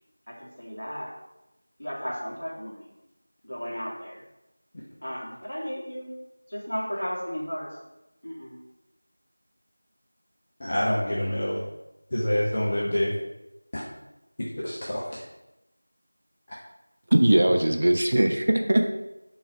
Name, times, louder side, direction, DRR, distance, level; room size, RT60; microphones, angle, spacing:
voice 1, 0.3-1.1 1.8-2.9 3.4-4.2 5.0-6.1 6.5-7.7 8.2-8.6, equal, 55° left, -4 dB, 2.3 m, -34 dB
voice 2, 10.6-11.6 12.1-13.1 13.7-13.8 14.6-15.1, left 1 dB, 20° left, -6 dB, 0.6 m, -26 dB
voice 3, 17.1-18.9, right 1 dB, 30° right, 4 dB, 0.4 m, -20 dB
6.1 x 4.0 x 5.0 m, 0.95 s
figure-of-eight pair, 175°, 0 cm